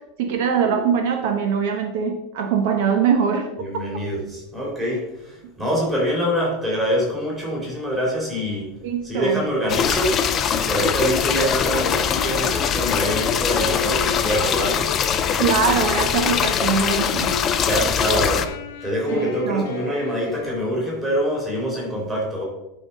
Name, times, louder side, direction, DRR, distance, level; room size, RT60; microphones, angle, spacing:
voice 1, 0.2-3.5 8.8-9.4 15.4-17.3 19.1-19.6, right 6 dB, 60° right, 5 dB, 0.9 m, -22 dB
voice 2, 3.6-8.7 9.0-10.2 10.5-14.9 17.6-18.5 18.8-22.4, equal, 10° right, -4 dB, 2.5 m, -25 dB
sound 1, 9.7-18.5, left 8 dB, 20° left, 0.4 m, -22 dB
Wind instrument woodwind instrument, 11.4-15.6 16.1-17.5 17.9-21.1, left 7 dB, 70° left, 0.9 m, -34 dB
10.5 x 4.0 x 5.2 m, 0.92 s
supercardioid pair, 180°, 0 cm